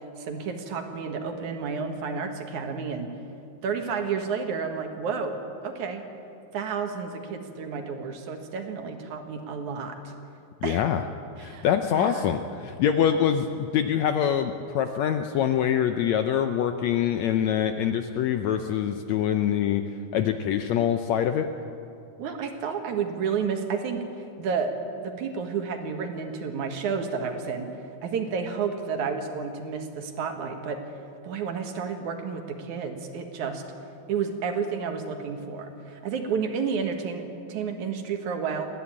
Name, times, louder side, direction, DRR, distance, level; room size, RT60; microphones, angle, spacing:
voice 1, 0.2-3.1 3.6-6.0 6.5-10.1 10.6-10.8 11.4-11.7 11.9-12.4 13.1-13.2 22.2-24.7 25.0-27.7 28.0-30.8 31.2-33.6 34.1-37.2 37.5-38.7, right 6 dB, 65° right, 5 dB, 2.8 m, -31 dB
voice 2, 10.6-11.0 11.4-19.8 20.1-21.5, left 9 dB, 75° left, 7 dB, 1.7 m, -24 dB
29.0 x 11.5 x 8.7 m, 2.6 s
omnidirectional pair, 3.8 m